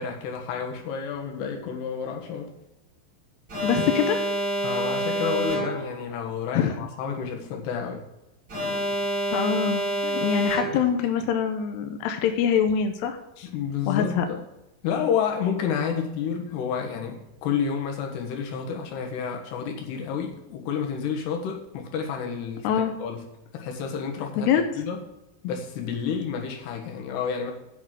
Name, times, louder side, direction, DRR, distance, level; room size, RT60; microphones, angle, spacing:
voice 1, 0.0-2.5 4.6-8.0 13.4-14.4 14.8-22.7 23.0-23.2 23.5-24.5 24.8-25.0 25.4-27.5, left 7 dB, 65° left, 2 dB, 3.1 m, -30 dB
Alarm, 3.5-6.0 8.5-11.0, right 1 dB, 15° right, 4.2 m, -28 dB
voice 2, 3.6-4.2 6.5-6.7 9.3-13.5 13.9-14.3 22.6-22.9 24.4-24.6, left 8 dB, 85° left, 6 dB, 2.4 m, -24 dB
8.8 x 6.1 x 7.5 m, 0.94 s
omnidirectional pair, 5.8 m